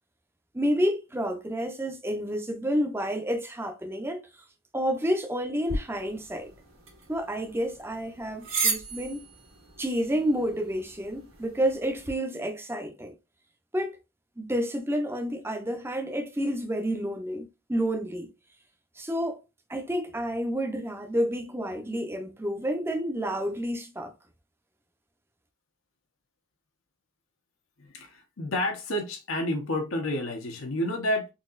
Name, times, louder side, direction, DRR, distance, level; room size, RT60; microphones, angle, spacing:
voice 1, 0.5-4.2 4.7-6.5 7.1-9.2 9.8-13.1 13.7-14.0 14.4-18.3 19.0-19.4 19.7-24.1, equal, 10° right, 0.6 m, -29 dB
sound 1, 5.7-12.1, right 3 dB, 85° right, 1.7 m, -36 dB
voice 2, 27.8-31.3, left 1 dB, 85° left, 1.0 m, -30 dB
4.1 x 2.9 x 2.5 m
head